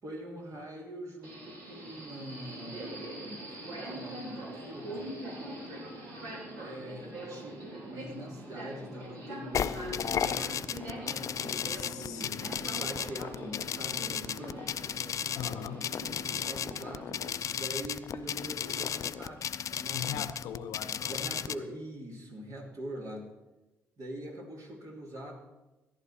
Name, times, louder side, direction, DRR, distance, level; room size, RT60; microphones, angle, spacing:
voice 1, 0.0-5.0 6.5-12.3 12.8-14.7 16.2-20.2 21.1-23.3 24.0-25.4, equal, 55° right, 0 dB, 2.9 m, -43 dB
Subway metro underground, 1.2-17.0, right 1 dB, 70° right, 3.1 m, -43 dB
sound 1, 9.5-21.5, left 8 dB, 55° left, 0.5 m, -34 dB
voice 2, 11.7-12.6 15.3-16.0 19.9-21.5, left 8 dB, 70° left, 12 dB, 0.8 m, -41 dB
14.5 x 11.0 x 4.3 m, 1.1 s
hypercardioid pair, 45°, 7 cm